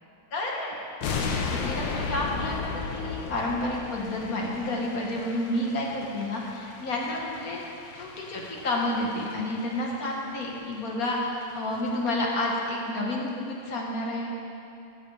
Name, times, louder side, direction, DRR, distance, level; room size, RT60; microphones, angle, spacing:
voice 1, 0.3-0.7 1.5-7.6 7.9-14.3, left 1 dB, 50° left, -2 dB, 1.3 m, -30 dB
sound 1, 1.0-10.2 10.4-10.6 11.0-11.1 11.4-11.5 11.7-12.1 12.3-12.4, left 4 dB, 70° left, 1.4 m, -35 dB
13.5 x 7.9 x 3.2 m, 2.8 s
omnidirectional pair, 2.4 m